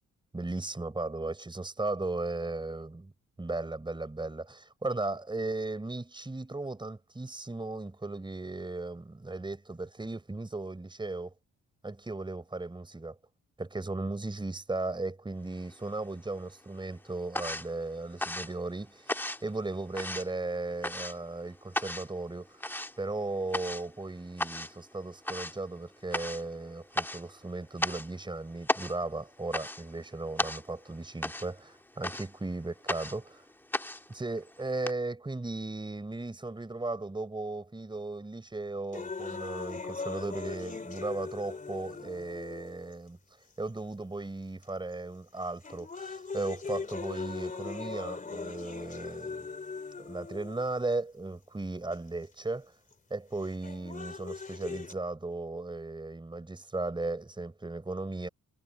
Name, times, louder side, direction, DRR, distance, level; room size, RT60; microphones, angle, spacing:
voice 1, 0.3-3.1 3.4-11.3 11.8-13.2 13.6-22.5 23.0-33.2 34.1-43.2 43.6-49.4 50.0-52.7 53.1-58.3, right 2 dB, 15° right, 4.9 m, -36 dB
sound 1, 15.6-16.4 16.6-34.9, left 1 dB, 5° left, 1.7 m, -36 dB
sound 2, 38.9-42.9 43.7-43.8 44.6-44.9 45.4-50.9 51.9-52.0 53.4-54.9, left 4 dB, 25° left, 2.8 m, -39 dB
cardioid pair, 90°, 30 cm